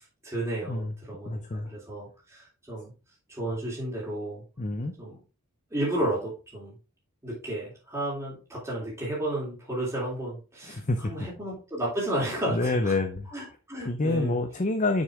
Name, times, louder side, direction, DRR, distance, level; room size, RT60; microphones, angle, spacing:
voice 1, 0.2-2.9 3.3-4.4 5.0-5.2 5.7-6.7 7.2-13.0 13.3-14.4, right 1 dB, 15° right, -6 dB, 3.2 m, -32 dB
voice 2, 1.3-1.7 4.6-4.9 10.6-11.1 12.5-13.3 13.8-15.0, left 2 dB, 35° left, 7 dB, 0.7 m, -27 dB
6.5 x 6.5 x 3.6 m, 0.32 s
head